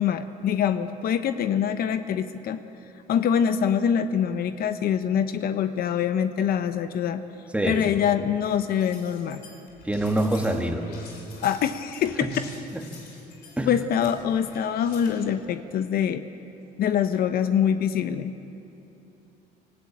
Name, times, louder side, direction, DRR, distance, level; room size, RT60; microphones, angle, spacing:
voice 1, 0.0-2.6 3.1-7.2 7.7-9.4 11.4-12.3 13.7-16.2 16.8-18.3, left 8 dB, 65° left, 10 dB, 0.9 m, -24 dB
voice 2, 7.5-7.8 9.8-10.9 12.7-12.8 13.6-13.7, right 1 dB, 5° right, 3 dB, 2.1 m, -25 dB
sound 1, 8.4-15.2, left 4 dB, 80° left, 4.7 m, -48 dB
25.0 x 14.5 x 8.7 m, 2.9 s
cardioid pair, 110°, 17 cm